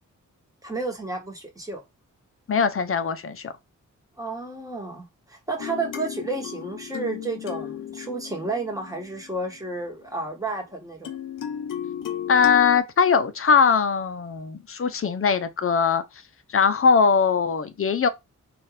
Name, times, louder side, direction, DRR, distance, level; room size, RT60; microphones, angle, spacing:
voice 1, 0.6-1.8 4.2-11.1, right 3 dB, 10° right, 1.2 m, -31 dB
voice 2, 2.5-3.5 12.3-16.0 16.5-18.1, left 6 dB, 45° left, 0.6 m, -21 dB
sound 1, 5.6-9.9 11.0-12.8, left 9 dB, 80° left, 0.7 m, -35 dB
4.2 x 2.5 x 3.2 m
cardioid pair, 85°, 32 cm